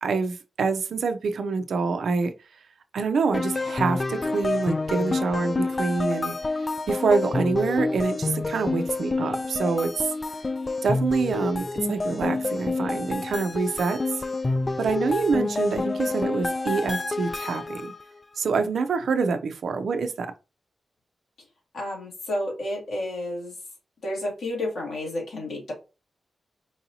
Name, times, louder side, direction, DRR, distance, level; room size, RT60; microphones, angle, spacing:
voice 1, 0.0-2.3 2.9-10.1 10.8-14.0 14.8-17.9 18.4-20.3, right 4 dB, 80° right, 0.4 m, -26 dB
sound 1, 3.3-18.0, left 3 dB, 35° left, 0.3 m, -28 dB
voice 2, 21.7-23.5 24.0-25.7, left 1 dB, 80° left, 2.0 m, -31 dB
4.6 x 2.7 x 2.7 m
cardioid pair, 55°, 0 cm